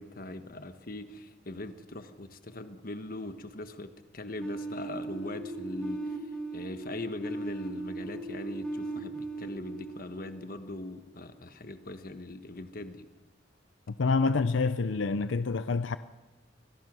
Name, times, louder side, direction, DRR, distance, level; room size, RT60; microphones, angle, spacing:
voice 1, 0.0-6.2 6.5-13.1, left 2 dB, 50° left, 1.3 m, -41 dB
sound 1, 4.4-11.2, right 2 dB, 5° left, 1.5 m, -38 dB
voice 2, 14.0-16.0, left 4 dB, 85° left, 0.6 m, -27 dB
25.0 x 17.0 x 6.2 m
head